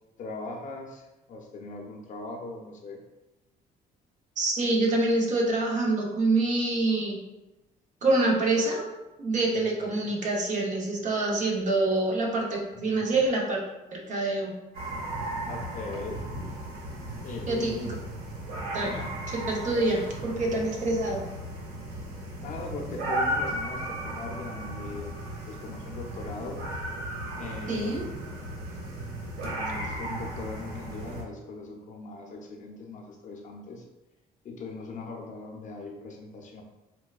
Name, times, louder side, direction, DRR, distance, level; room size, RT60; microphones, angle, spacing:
voice 1, 0.2-3.0 9.5-10.1 12.7-13.2 15.4-16.2 17.2-18.0 18.7-19.1 22.4-25.1 25.5-26.6 27.3-28.1 29.4-33.9 34.4-36.6, left 3 dB, 50° left, 1 dB, 0.6 m, -40 dB
voice 2, 4.4-7.2 8.0-8.9 9.2-13.6 13.9-14.6 17.5-17.7 18.7-19.0 19.3-21.3 27.7-28.1, right 2 dB, 45° right, -1 dB, 0.8 m, -26 dB
sound 1, 14.7-31.2, right 1 dB, 75° right, 1.2 m, -35 dB
4.5 x 2.2 x 2.3 m, 1.0 s
cardioid pair, 110°, 17 cm